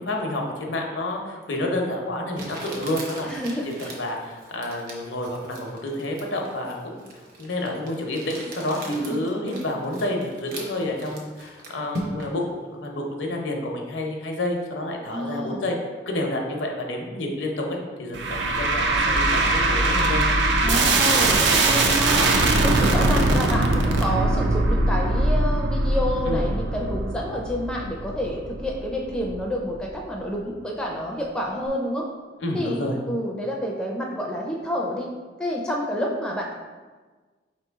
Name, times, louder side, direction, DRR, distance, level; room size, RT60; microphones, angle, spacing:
voice 1, 0.0-3.3 3.6-7.1 7.4-12.4 12.7-15.8 16.1-20.2 26.2-26.5 32.4-33.0, left 1 dB, 80° left, 1 dB, 0.7 m, -29 dB
Crumpling crinkling, 1.4-1.5 2.3-12.4, right 1 dB, 50° right, 0.8 m, -39 dB
voice 2, 3.2-3.9 8.9-9.2 15.1-15.6 20.6-22.3 22.6-32.1 32.5-32.8 33.1-35.1 35.4-36.5, equal, 5° left, -2 dB, 0.4 m, -29 dB
sound 1, 18.1-29.4, right 2 dB, 75° right, 0.5 m, -21 dB
5.1 x 3.0 x 3.5 m, 1.4 s
head